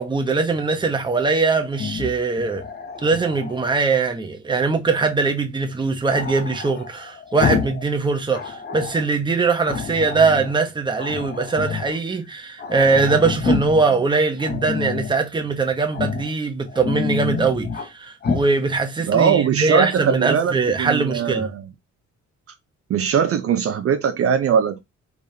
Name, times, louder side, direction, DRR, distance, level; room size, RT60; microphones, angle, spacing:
voice 1, 0.0-2.6 3.0-21.5, right 4 dB, 15° right, 0.9 m, -21 dB
Growling, 1.7-3.7 6.1-7.9 8.1-9.0 9.6-10.5 11.0-12.0 12.3-12.4 12.6-13.9 14.4-15.2 15.9-16.3 16.7-17.9 18.2-18.5, left 5 dB, 35° left, 0.7 m, -28 dB
voice 2, 19.1-21.6 22.9-24.8, right 7 dB, 50° right, 0.6 m, -20 dB
4.7 x 3.8 x 2.7 m
cardioid pair, 150°, 29 cm